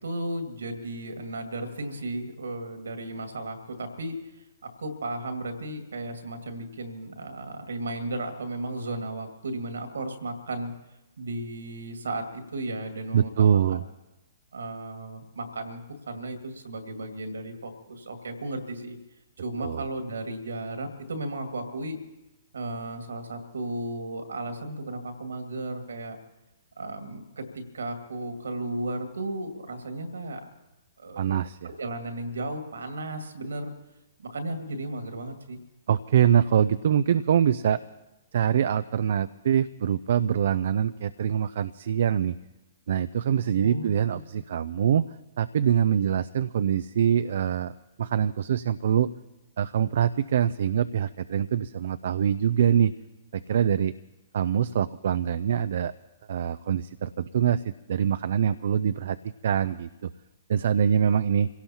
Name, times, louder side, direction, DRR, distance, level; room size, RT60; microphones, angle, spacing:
voice 1, 0.0-10.7 11.2-13.6 14.5-15.8 16.1-19.0 19.4-22.0 22.5-26.2 26.8-30.4 31.0-31.3 31.6-33.7 34.2-35.6 43.6-44.2, right 2 dB, 75° right, 5 dB, 2.2 m, -35 dB
voice 2, 13.1-13.8 19.6-19.8 31.2-31.7 35.9-37.8 38.3-42.4 42.9-45.1 45.4-47.7 48.0-49.1 49.6-52.9 53.3-53.9 54.3-55.9 56.3-59.2 59.4-60.1 60.5-61.5, right 8 dB, 60° right, 13 dB, 0.4 m, -24 dB
26.5 x 17.5 x 2.9 m, 1.0 s
figure-of-eight pair, 120°, 0 cm